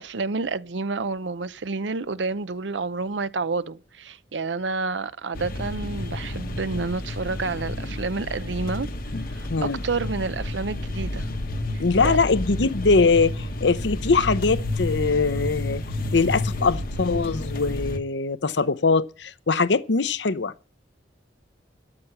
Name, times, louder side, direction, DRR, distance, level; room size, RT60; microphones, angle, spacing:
voice 1, 0.0-8.9 9.3-11.3 11.7-12.2, right 3 dB, 85° right, 0.7 m, -29 dB
sound 1, 5.3-18.0, left 1 dB, 50° left, 1.1 m, -30 dB
voice 2, 11.8-15.8 16.1-20.5, left 4 dB, 75° left, 0.7 m, -22 dB
13.0 x 7.2 x 8.0 m
head